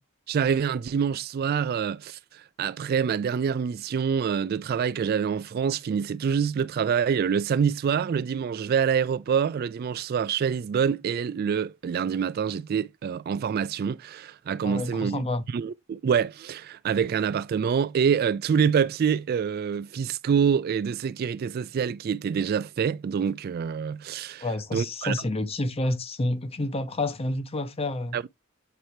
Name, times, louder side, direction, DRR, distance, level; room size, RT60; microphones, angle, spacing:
voice 1, 0.3-15.2 15.5-24.5 24.7-25.1 28.1-28.2, right 7 dB, 45° right, 0.3 m, -26 dB
voice 2, 14.6-15.4 24.4-28.2, left 2 dB, 30° left, 0.7 m, -29 dB
7.9 x 4.4 x 2.7 m
head